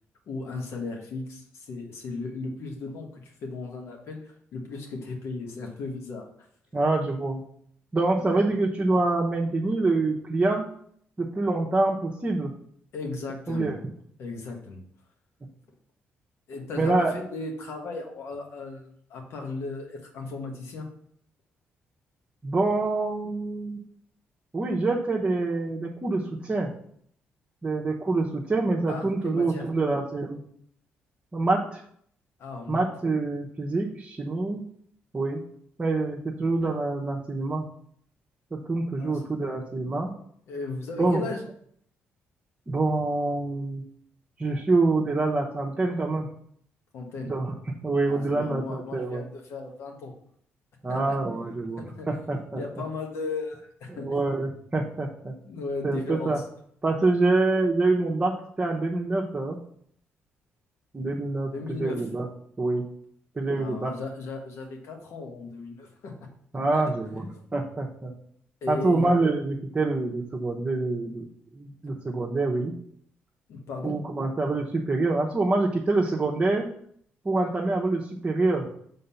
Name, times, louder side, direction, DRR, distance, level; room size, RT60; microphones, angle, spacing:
voice 1, 0.3-6.3 8.2-8.5 12.9-13.7 14.2-14.8 16.5-20.9 28.9-29.7 32.4-32.8 39.0-39.2 40.5-41.4 46.9-47.3 48.0-50.1 50.9-51.2 51.5-54.2 55.2-56.3 61.5-62.0 63.5-66.3 66.7-66.8 67.1-67.3 68.6-69.1 73.5-74.0, left 3 dB, 75° left, 2 dB, 1.5 m, -36 dB
voice 2, 6.7-7.4 7.9-10.7 11.2-12.5 13.5-13.8 16.8-17.1 22.4-23.8 24.5-26.7 27.6-30.4 31.3-31.8 32.7-34.6 35.1-35.4 35.8-37.6 38.5-40.1 41.0-41.2 42.7-43.8 44.4-46.3 47.3-47.5 47.8-49.2 50.8-52.6 53.9-55.3 55.8-56.4 56.8-59.6 60.9-61.5 61.8-62.3 62.6-62.8 63.4-63.9 66.5-68.1 68.7-71.2 71.5-72.7 73.8-76.7 77.2-78.7, right 2 dB, 30° right, -3 dB, 1.0 m, -26 dB
5.5 x 3.9 x 5.6 m, 0.65 s
supercardioid pair, 70°, 5 cm